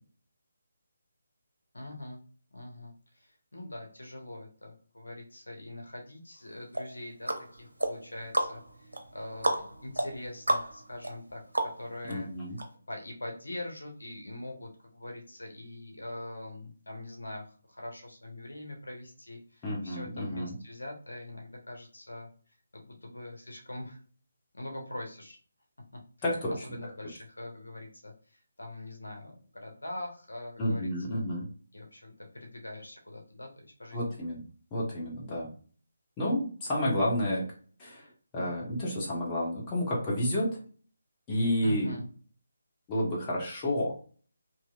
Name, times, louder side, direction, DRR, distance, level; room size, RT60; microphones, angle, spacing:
voice 1, 1.7-2.2 2.5-12.3 12.9-22.3 22.7-24.0 24.5-25.4 26.3-31.3 31.7-34.2 41.6-42.1, left 1 dB, 75° left, 2 dB, 0.9 m, -43 dB
sound 1, 6.7-12.1 12.6-12.7, right 1 dB, 80° right, 0.6 m, -33 dB
voice 2, 12.1-12.6 19.6-20.5 26.2-26.5 30.6-31.5 33.9-34.4 34.7-35.5 36.2-37.4 37.8-38.1 38.3-40.6 41.3-41.9 42.9-43.9, left 1 dB, 20° left, -5 dB, 1.0 m, -30 dB
2.9 x 2.7 x 2.4 m, 0.42 s
figure-of-eight pair, 150°, 0 cm